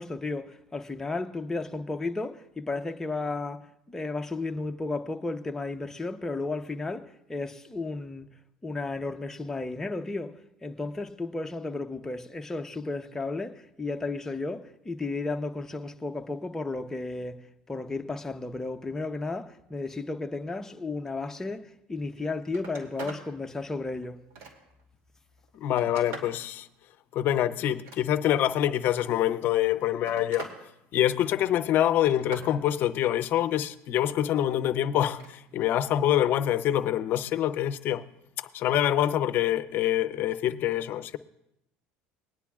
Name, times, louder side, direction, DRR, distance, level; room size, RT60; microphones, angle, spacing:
voice 1, 0.0-8.3 8.6-17.4 17.7-24.2, left 3 dB, 10° left, 0.7 m, -33 dB
Telephone, 22.0-22.1 22.4-23.3 23.7-24.8 25.4-26.4 27.6-28.5 29.4-30.6 30.9-31.4 31.8-32.5 35.0-35.3 36.7-36.9, right 3 dB, 70° right, 2.4 m, -43 dB
voice 2, 25.5-26.7 27.1-30.5 30.9-38.0 38.4-41.2, left 11 dB, 55° left, 0.6 m, -25 dB
20.5 x 9.9 x 2.4 m
supercardioid pair, 105°, 4 cm